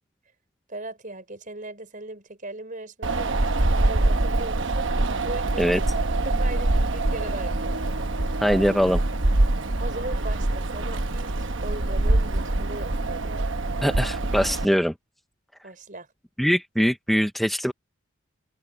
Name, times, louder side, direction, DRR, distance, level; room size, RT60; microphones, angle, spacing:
voice 1, 0.7-4.9 5.2-7.8 9.8-13.5 15.6-16.1, right 2 dB, 40° right, 5.2 m, -38 dB
Wind, 3.0-14.7, right 2 dB, 60° right, 1.1 m, -24 dB
voice 2, 8.4-9.0 13.8-14.9 16.4-17.7, equal, ahead, 0.5 m, -22 dB
open air
head